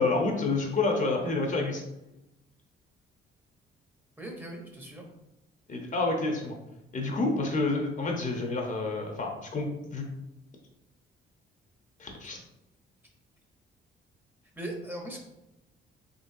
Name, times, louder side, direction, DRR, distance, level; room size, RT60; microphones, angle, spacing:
voice 1, 0.0-1.8 5.7-6.6 6.9-10.1 12.0-12.4, left 3 dB, 40° left, 2 dB, 0.8 m, -28 dB
voice 2, 4.2-5.1 14.5-15.2, right 1 dB, 10° right, 0 dB, 0.9 m, -39 dB
3.9 x 3.2 x 2.6 m, 0.91 s
cardioid pair, 90°, 20 cm